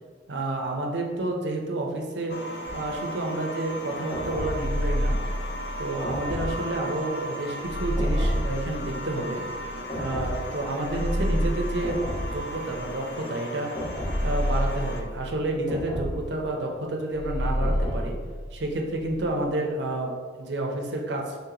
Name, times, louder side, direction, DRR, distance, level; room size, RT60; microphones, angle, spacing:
voice 1, 0.3-2.4 2.7-5.2 5.8-9.4 9.9-13.7 14.2-18.2 18.5-21.4, right 2 dB, 85° right, 1 dB, 0.7 m, -30 dB
sound 1, 2.3-15.0, equal, 65° left, 0.5 m, -37 dB
sound 2, 2.6-3.0 4.1-4.9 6.0-6.8 8.0-8.7 9.9-10.7 11.8-12.6 13.7-14.5 15.7-16.5 17.6-17.9, equal, 15° left, 1.0 m, -33 dB
sound 3, 4.4-6.6 7.6-9.8 10.8-13.1 13.9-16.1 17.1-19.3, equal, 35° right, 1.4 m, -29 dB
3.6 x 2.8 x 3.8 m, 1.5 s
head